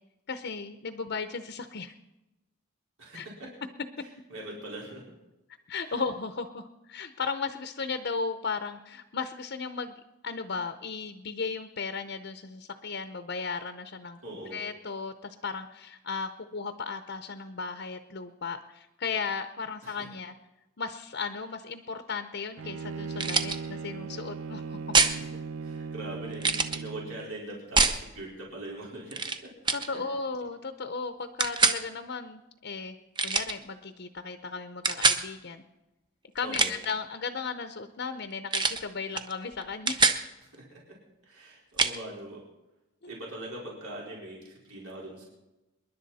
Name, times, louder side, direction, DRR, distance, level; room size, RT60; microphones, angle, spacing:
voice 1, 0.3-1.9 3.1-3.3 5.7-9.9 10.2-14.2 14.5-20.3 20.8-24.9 29.7-33.0 33.2-35.6 36.3-40.2 43.0-43.1, left 5 dB, 50° left, 9 dB, 0.7 m, -35 dB
voice 2, 3.0-3.5 4.3-5.0 5.9-6.1 14.2-14.6 19.8-19.9 25.0-25.3 25.6-29.2 29.7-30.0 36.4-36.7 40.5-40.8 41.3-42.4 43.1-45.3, right 1 dB, 85° right, -3 dB, 4.4 m, -42 dB
Bowed string instrument, 22.6-27.3, right 5 dB, 65° right, 0.5 m, -38 dB
sound 1, 23.2-23.6 24.9-25.2 26.4-26.8 27.8-28.0 29.1-29.4 29.7-29.9 31.4-31.8 33.2-33.5 34.8-35.2 36.4-36.9 38.5-38.8 39.2-39.3 39.6-40.2 41.8-41.9, right 4 dB, 20° right, 0.7 m, -24 dB
27.5 x 11.0 x 4.2 m, 1.0 s
head